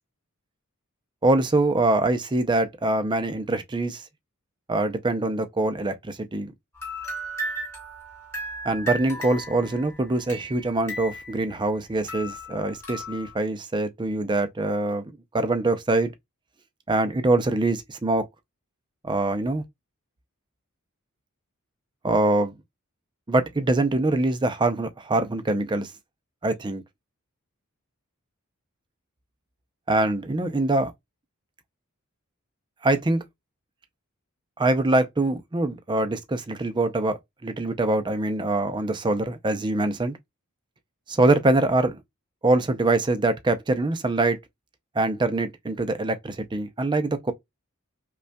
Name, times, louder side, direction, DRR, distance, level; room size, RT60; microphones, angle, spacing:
voice 1, 1.2-4.0 4.7-6.5 8.6-16.1 16.9-18.3 19.0-19.6 22.0-22.5 23.3-25.9 26.4-26.8 29.9-30.9 32.8-33.2 34.6-40.2 41.1-42.0 42.4-44.4 45.0-47.3, right 2 dB, 20° right, 0.5 m, -24 dB
sound 1, 6.7-11.8 12.1-13.4, right 1 dB, 10° left, 2.6 m, -36 dB
5.2 x 2.3 x 2.2 m
head